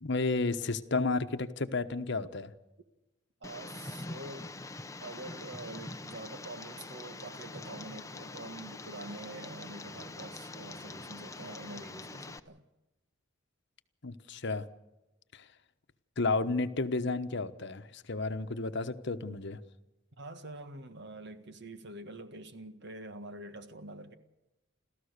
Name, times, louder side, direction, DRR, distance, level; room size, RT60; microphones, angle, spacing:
voice 1, 0.0-2.5 14.0-14.7 15.3-15.5 16.2-19.6, left 3 dB, 60° left, 1.1 m, -32 dB
Tick, 3.4-12.4, left 2 dB, 15° left, 0.8 m, -44 dB
voice 2, 3.4-4.6 5.0-12.6 20.2-24.1, right 2 dB, 55° right, 1.8 m, -46 dB
29.5 x 14.0 x 6.7 m
head